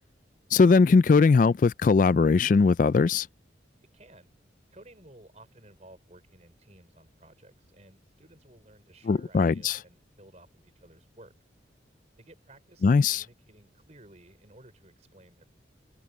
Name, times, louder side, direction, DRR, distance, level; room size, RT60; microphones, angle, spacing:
voice 1, 0.5-3.3 9.1-9.8 12.8-13.2, left 4 dB, 45° left, 0.3 m, -20 dB
voice 2, 3.9-4.3 4.7-11.3 12.2-15.4, right 1 dB, 35° right, 4.6 m, -55 dB
head